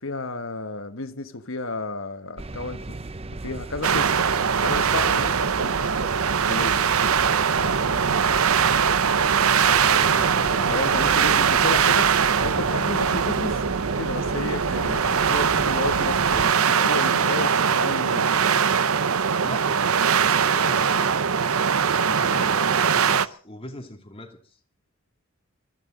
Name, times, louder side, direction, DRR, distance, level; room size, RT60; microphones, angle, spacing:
voice 1, 0.0-3.0 3.4-4.1 4.6-6.9 10.7-13.6 14.0-18.3, left 3 dB, 60° left, 1.5 m, -32 dB
sound 1, 2.4-16.5, right 2 dB, 25° right, 0.7 m, -36 dB
sound 2, 3.8-23.3, right 6 dB, 75° right, 0.8 m, -21 dB
voice 2, 7.5-8.3 9.5-11.1 19.4-21.3 22.0-24.6, left 1 dB, 25° left, 2.6 m, -40 dB
23.5 x 15.0 x 3.9 m
head